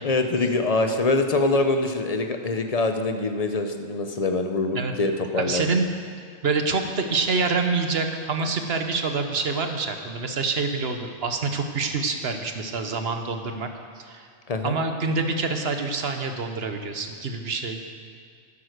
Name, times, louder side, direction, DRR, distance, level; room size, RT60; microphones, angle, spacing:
voice 1, 0.0-5.7 14.5-14.8, left 2 dB, 35° left, 6 dB, 0.7 m, -24 dB
voice 2, 5.4-5.9 6.4-13.7 14.0-14.3 14.6-17.8, right 4 dB, 50° right, 6 dB, 1.2 m, -26 dB
11.0 x 11.0 x 6.6 m, 2.2 s
omnidirectional pair, 1.4 m